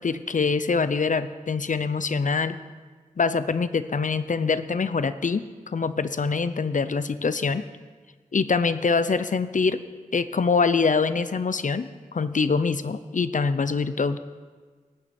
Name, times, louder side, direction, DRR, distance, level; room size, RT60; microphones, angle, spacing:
voice 1, 0.0-2.6 3.2-7.6 8.3-9.8 10.1-14.2, left 4 dB, 60° left, 13 dB, 0.6 m, -24 dB
17.5 x 9.1 x 4.4 m, 1.5 s
wide cardioid pair, 50°, 14 cm